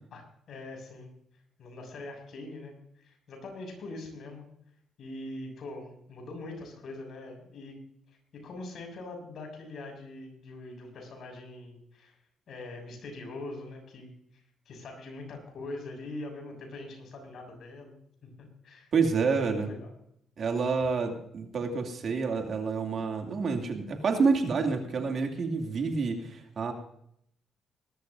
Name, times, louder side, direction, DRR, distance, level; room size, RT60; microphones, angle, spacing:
voice 1, 0.1-1.1 1.6-4.5 5.0-7.8 8.1-12.1 12.5-18.9 19.4-19.9, left 2 dB, 65° left, 3 dB, 6.5 m, -43 dB
voice 2, 18.9-19.7 20.4-26.7, right 4 dB, 55° right, 3 dB, 2.5 m, -28 dB
20.0 x 13.0 x 2.7 m, 0.71 s
cardioid pair, 90°, 0 cm